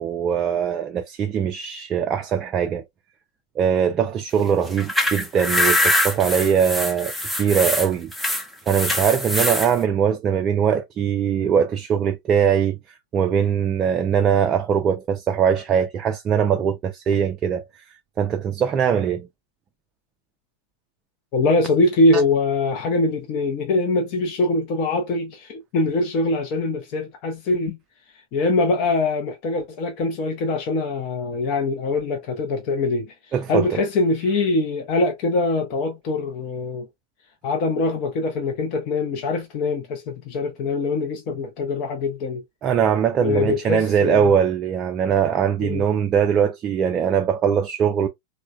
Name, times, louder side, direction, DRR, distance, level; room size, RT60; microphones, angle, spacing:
voice 1, 0.0-2.8 3.6-8.1 8.7-17.8 18.2-19.3 22.1-22.2 33.3-33.8 42.6-48.1, right 8 dB, 30° right, 0.3 m, -21 dB
sound 1, 4.7-9.7, left 1 dB, 5° left, 0.7 m, -23 dB
voice 2, 21.3-27.8 28.3-33.1 33.5-36.9 37.4-42.4 43.2-44.3 45.6-45.8, left 2 dB, 40° left, 0.6 m, -23 dB
3.2 x 2.1 x 2.3 m
figure-of-eight pair, 90°, 0 cm